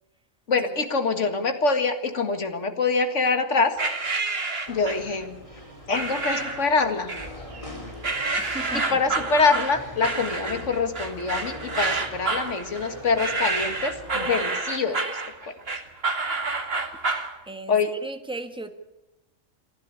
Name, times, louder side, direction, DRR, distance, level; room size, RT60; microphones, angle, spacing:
voice 1, 0.5-3.8 4.7-5.4 5.9-7.1 8.3-15.5 17.7-17.9, left 4 dB, 70° left, 8 dB, 2.2 m, -25 dB
sound 1, 3.8-5.1 5.9-6.7 7.1-7.7 8.0-17.3, right 3 dB, 50° right, 2.3 m, -28 dB
sound 2, 4.7-14.5, equal, 25° left, 3.4 m, -41 dB
voice 2, 8.4-9.0 17.5-18.7, right 2 dB, 5° right, 6 dB, 1.6 m, -37 dB
27.5 x 11.5 x 9.8 m, 0.98 s
omnidirectional pair, 1.3 m